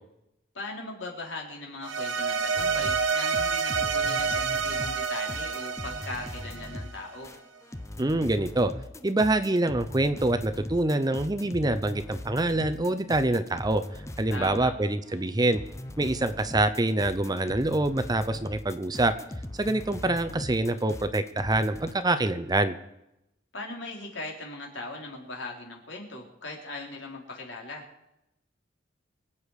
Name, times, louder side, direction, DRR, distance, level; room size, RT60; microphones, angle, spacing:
voice 1, 0.5-7.3 14.3-14.7 23.5-27.9, left 2 dB, 70° left, 0 dB, 3.8 m, -39 dB
sound 1, 1.8-7.2, right 5 dB, 90° right, 1.3 m, -28 dB
sound 2, 2.6-14.8 15.1-21.9, left 1 dB, 15° left, 0.7 m, -40 dB
voice 2, 8.0-8.7 9.0-13.8 14.2-15.6 16.0-19.1 19.5-22.8, right 2 dB, 20° right, 10 dB, 0.7 m, -25 dB
25.5 x 8.5 x 4.9 m, 0.87 s
head